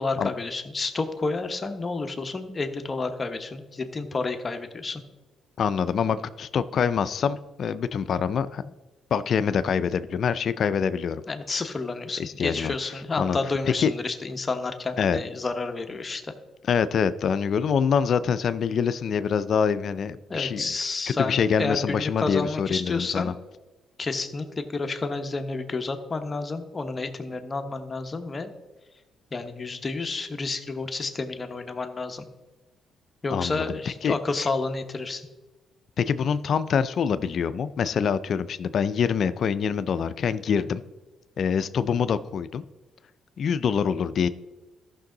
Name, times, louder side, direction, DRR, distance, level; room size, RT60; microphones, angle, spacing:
voice 1, 0.0-5.0 11.3-16.3 20.3-23.3 24.0-28.5 29.3-32.2 33.2-35.3, left 3 dB, 30° left, 6 dB, 1.0 m, -30 dB
voice 2, 5.6-8.7 9.1-11.2 12.2-12.7 13.2-13.4 13.8-13.9 15.0-15.2 16.7-20.6 21.2-23.3 33.3-34.1 36.0-40.8 41.4-42.6 43.4-44.3, left 7 dB, 60° left, 13 dB, 0.4 m, -25 dB
14.0 x 6.1 x 3.8 m, 1.2 s
cardioid pair, 90°, 0 cm